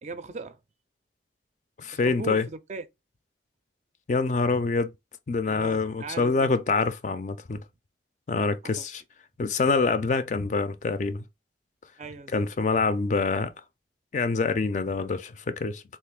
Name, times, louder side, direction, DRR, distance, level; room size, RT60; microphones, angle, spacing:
voice 1, 0.0-0.6 2.0-2.9 5.4-6.5 8.6-8.9 12.0-12.5, right 3 dB, 40° right, 0.4 m, -39 dB
voice 2, 1.8-2.5 4.1-4.9 5.3-7.6 8.3-9.0 9.4-11.2 12.3-13.5 14.1-15.8, left 4 dB, 40° left, 0.4 m, -26 dB
3.3 x 2.5 x 3.5 m
head